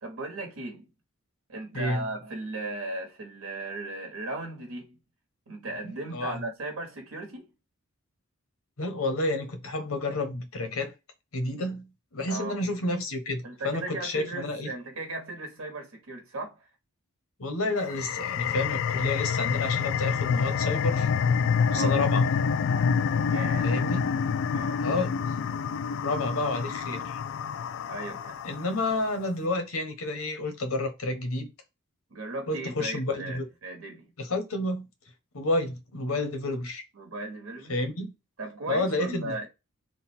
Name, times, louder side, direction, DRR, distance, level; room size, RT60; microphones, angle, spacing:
voice 1, 0.0-0.9 1.5-5.0 5.5-7.5 12.3-12.6 13.4-16.7 21.7-22.0 23.3-23.7 24.5-24.8 27.9-28.4 32.1-34.1 36.9-37.8 38.4-39.5, right 2 dB, 75° right, 1.3 m, -37 dB
voice 2, 5.8-6.3 8.8-10.9 11.3-14.7 17.4-21.1 21.7-22.2 23.6-24.1 24.8-25.2 26.0-27.2 28.4-31.5 32.5-33.4 34.2-34.9 35.3-36.8 37.7-38.1 38.7-39.4, left 2 dB, 85° left, 1.0 m, -30 dB
sound 1, 17.8-28.9, left 6 dB, 65° left, 0.3 m, -27 dB
3.9 x 2.2 x 4.2 m
head